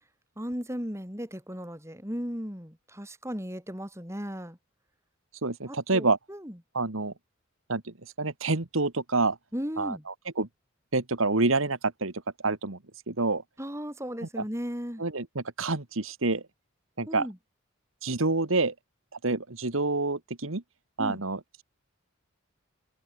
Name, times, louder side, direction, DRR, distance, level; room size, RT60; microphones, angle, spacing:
voice 1, 0.4-4.6 5.7-6.6 9.5-10.0 13.6-15.0 17.1-17.4 21.0-21.2, equal, 15° right, 6.1 m, -36 dB
voice 2, 5.4-6.2 6.7-7.1 7.7-9.4 9.8-10.5 10.9-12.1 12.4-12.8 13.1-13.4 14.4-14.5 15.0-16.4 17.0-17.3 18.0-18.7 19.2-20.6 21.0-21.6, right 3 dB, 70° right, 1.8 m, -27 dB
head